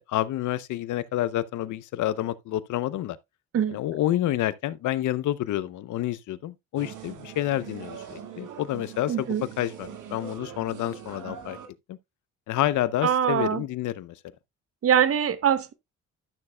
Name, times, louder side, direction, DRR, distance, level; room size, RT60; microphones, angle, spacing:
voice 1, 0.0-3.2 3.7-9.3 9.6-11.6 11.9-12.0 12.5-14.2, left 13 dB, 75° left, 0.7 m, -28 dB
sound 1, 6.8-11.7, right 8 dB, 80° right, 1.9 m, -42 dB
voice 2, 9.1-9.4 13.0-13.6 14.8-15.7, right 9 dB, 50° right, 0.9 m, -23 dB
12.0 x 6.6 x 2.3 m
cardioid pair, 90°, 30 cm